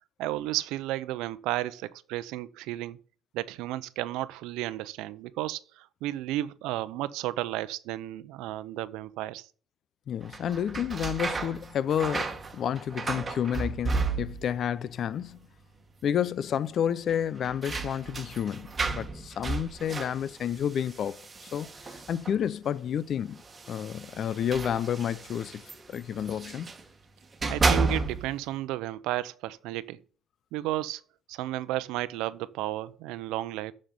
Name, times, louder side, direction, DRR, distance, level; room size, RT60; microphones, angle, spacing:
voice 1, 0.2-3.0 3.3-9.5 27.5-30.0 30.5-31.0 31.3-33.7, right 15 dB, 85° right, 0.7 m, -33 dB
voice 2, 10.1-15.4 16.0-21.3 21.5-21.7 21.9-23.4 23.7-25.6 25.9-26.7, left 9 dB, 55° left, 0.6 m, -30 dB
sound 1, 10.2-14.6 14.9-15.6 15.9-16.0 17.1-22.5 23.3-26.8 27.2-28.4, right 3 dB, 25° right, 1.7 m, -33 dB
7.5 x 6.5 x 7.0 m
cardioid pair, 105°, 0 cm